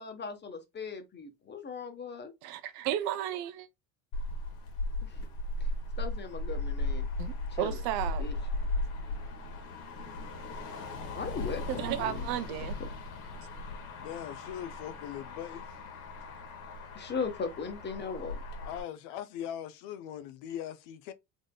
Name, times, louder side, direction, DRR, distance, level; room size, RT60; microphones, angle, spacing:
voice 1, 0.0-2.3 5.0-5.2 6.0-7.1 7.5-7.8 8.2-8.3 11.1-12.2 16.9-18.4, left 5 dB, 25° left, 1.2 m, -38 dB
voice 2, 2.4-3.7 7.2-8.4 11.7-12.8, right 12 dB, 55° right, 0.7 m, -34 dB
Motor vehicle (road), 4.1-18.8, left 2 dB, 90° left, 1.8 m, -37 dB
voice 3, 14.0-15.7 18.6-21.1, left 10 dB, 65° left, 0.7 m, -40 dB
3.7 x 3.7 x 2.3 m
supercardioid pair, 105°, 43 cm